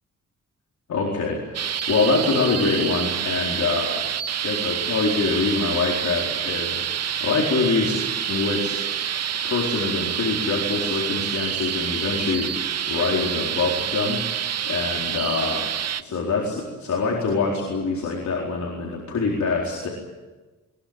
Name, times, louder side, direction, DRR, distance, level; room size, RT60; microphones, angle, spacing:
voice 1, 0.9-4.0 4.4-8.0 8.3-8.8 9.4-14.2 14.6-15.6 16.0-19.9, left 4 dB, 70° left, -2 dB, 4.4 m, -25 dB
sound 1, 1.5-16.0, right 9 dB, 60° right, 0.8 m, -27 dB
22.0 x 21.0 x 9.0 m, 1.2 s
wide cardioid pair, 120°, 29 cm